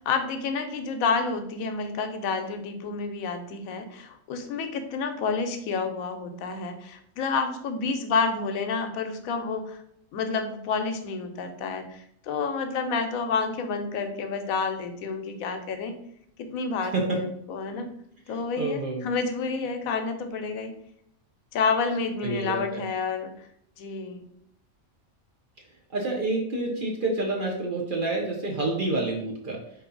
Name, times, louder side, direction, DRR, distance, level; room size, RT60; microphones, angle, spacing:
voice 1, 0.0-9.8 10.1-16.0 16.4-17.9 18.3-20.7 21.5-23.3 23.8-24.3, left 4 dB, 85° left, 7 dB, 1.0 m, -29 dB
voice 2, 18.3-19.0 22.2-22.8 25.9-29.6, right 2 dB, 50° right, 0 dB, 0.7 m, -28 dB
3.9 x 2.7 x 3.8 m, 0.70 s
omnidirectional pair, 1.4 m